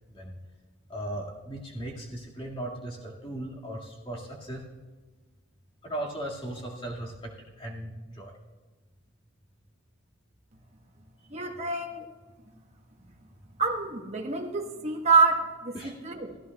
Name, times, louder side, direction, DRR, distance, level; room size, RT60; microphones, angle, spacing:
voice 1, 0.1-0.4 0.9-4.6 5.8-8.3 11.2-11.3 13.0-13.1 15.7-15.9, right 1 dB, 25° left, -2 dB, 2.0 m, -37 dB
voice 2, 11.3-12.1 13.6-15.7 16.0-16.4, right 4 dB, 30° right, 2 dB, 1.2 m, -26 dB
16.5 x 15.0 x 2.3 m, 1.3 s
head